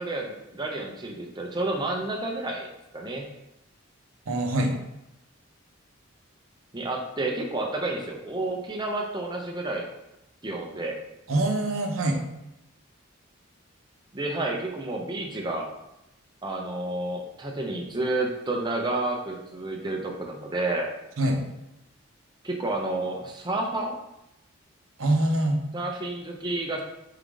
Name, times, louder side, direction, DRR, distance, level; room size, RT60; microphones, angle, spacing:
voice 1, 0.0-2.7 2.9-3.2 6.7-9.9 10.4-11.0 14.1-15.7 16.4-20.9 22.4-24.0 25.7-26.8, right 2 dB, 20° right, 1 dB, 0.6 m, -30 dB
voice 2, 4.3-4.7 11.3-12.2 21.2-21.4 25.0-25.6, right 1 dB, 75° right, 2 dB, 0.7 m, -24 dB
3.7 x 3.5 x 3.5 m, 0.88 s
head